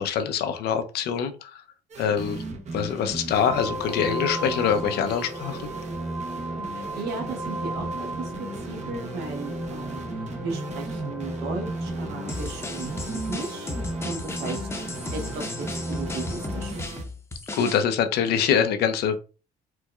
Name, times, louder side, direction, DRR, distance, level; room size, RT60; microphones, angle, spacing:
voice 1, 0.0-1.6 2.0-2.4 2.7-5.6 17.6-19.2, left 7 dB, 75° left, 0.6 m, -24 dB
sound 1, 1.9-17.0, right 2 dB, 40° right, 0.7 m, -36 dB
sound 2, 3.3-16.7, right 1 dB, 10° right, 0.8 m, -37 dB
voice 2, 6.7-13.7 14.0-14.7 15.1-17.0, right 3 dB, 75° right, 1.2 m, -36 dB
sound 3, 12.3-17.8, left 2 dB, 15° left, 0.7 m, -35 dB
4.5 x 2.3 x 2.3 m
cardioid pair, 110°, 17 cm